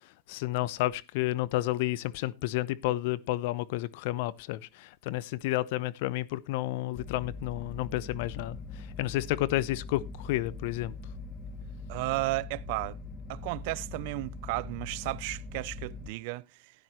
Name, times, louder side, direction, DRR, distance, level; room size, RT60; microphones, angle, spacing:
voice 1, 0.3-10.9, left 17 dB, 65° left, 0.7 m, -31 dB
sound 1, 6.9-16.1, left 3 dB, 20° left, 1.1 m, -42 dB
voice 2, 11.9-13.0 13.3-16.7, right 22 dB, 60° right, 0.5 m, -34 dB
12.5 x 10.5 x 3.0 m
hypercardioid pair, 105°, 0 cm